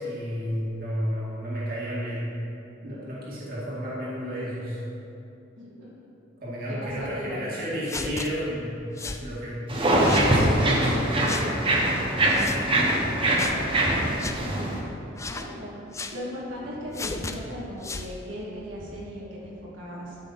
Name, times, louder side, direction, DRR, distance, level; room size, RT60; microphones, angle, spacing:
voice 1, 0.0-2.4 2.8-4.8 6.4-11.4, equal, 50° right, -7 dB, 2.2 m, -32 dB
voice 2, 5.6-5.9 6.7-7.5 14.1-14.8 15.3-15.8 16.1-20.2, equal, 80° right, -6 dB, 2.2 m, -37 dB
sound 1, 7.9-8.3 9.0-9.2 10.0-10.3 11.2-11.5 12.3-12.6 13.4-13.6 14.2-14.4 15.2-15.5 15.9-16.2 16.9-17.4 17.8-18.1, left 3 dB, 15° left, 0.4 m, -34 dB
sound 2, 9.7-14.8, right 1 dB, 30° right, 1.2 m, -23 dB
12.5 x 5.9 x 4.2 m, 2.7 s
head